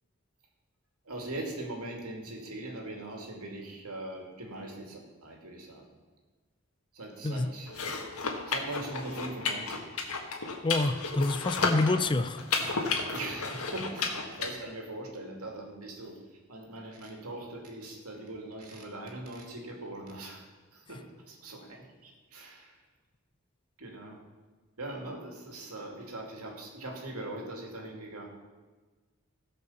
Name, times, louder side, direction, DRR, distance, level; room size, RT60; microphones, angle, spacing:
voice 1, 1.0-6.0 6.9-9.9 13.1-16.2 16.5-20.4 20.7-22.8 23.8-24.2 24.8-28.3, right 2 dB, 85° right, 0 dB, 2.6 m, -41 dB
voice 2, 7.2-7.5 10.6-12.4, left 2 dB, 20° left, 11 dB, 0.4 m, -27 dB
sound 1, 7.7-14.5, left 4 dB, 85° left, 1.6 m, -33 dB
16.0 x 5.5 x 7.2 m, 1.4 s
head